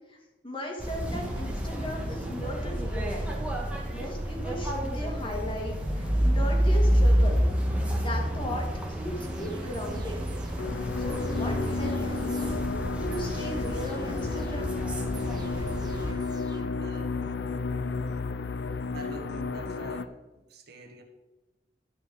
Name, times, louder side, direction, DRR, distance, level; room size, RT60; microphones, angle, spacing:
voice 1, 0.4-3.4 3.9-10.2 11.0-12.5 13.0-14.7, equal, 30° left, 0 dB, 2.4 m, -37 dB
sound 1, 0.8-16.1, equal, 5° right, 1.7 m, -29 dB
sound 2, 9.2-17.2 17.5-17.6, right 1 dB, 25° right, 1.0 m, -44 dB
sound 3, 10.6-20.0, left 4 dB, 65° left, 0.5 m, -32 dB
voice 2, 16.8-17.2 18.9-21.0, right 1 dB, 60° right, 3 dB, 1.7 m, -45 dB
12.0 x 5.0 x 8.0 m, 1.1 s
head